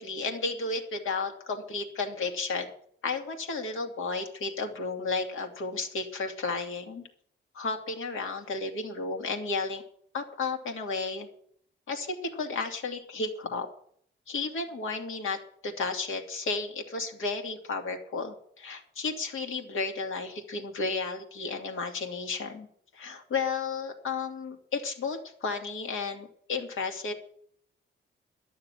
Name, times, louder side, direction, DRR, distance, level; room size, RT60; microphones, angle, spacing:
voice 1, 0.0-2.7 3.0-7.1 7.5-9.8 10.1-11.3 11.9-13.7 14.3-22.7 22.9-27.1, left 4 dB, 85° left, 4 dB, 2.4 m, -33 dB
12.0 x 6.7 x 9.8 m, 0.64 s
cardioid pair, 115°, 20 cm